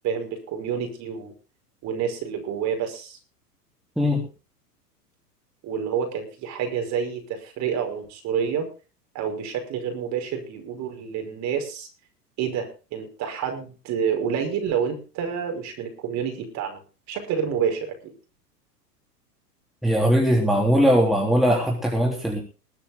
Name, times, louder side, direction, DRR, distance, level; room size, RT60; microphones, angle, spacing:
voice 1, 0.0-1.3 1.8-3.2 5.6-8.7 9.1-11.9 12.4-16.8 17.1-18.1, right 7 dB, 35° right, 5 dB, 5.3 m, -28 dB
voice 2, 19.8-22.4, equal, ahead, -1 dB, 3.5 m, -20 dB
21.0 x 9.8 x 3.8 m, 0.33 s
figure-of-eight pair, 95°, 48 cm